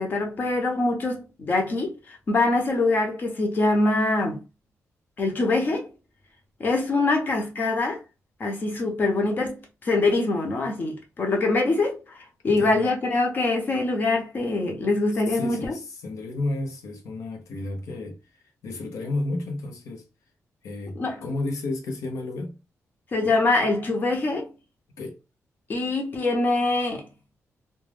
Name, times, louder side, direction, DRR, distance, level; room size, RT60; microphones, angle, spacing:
voice 1, 0.0-4.4 5.2-5.9 6.6-8.0 8.4-15.7 21.0-21.2 23.1-24.5 25.7-27.1, left 2 dB, 35° left, 0.7 m, -24 dB
voice 2, 12.5-12.9 15.1-20.1 20.6-22.6 25.0-25.2, left 2 dB, 90° left, 0.7 m, -32 dB
2.4 x 2.2 x 3.3 m
wide cardioid pair, 175°, 5 cm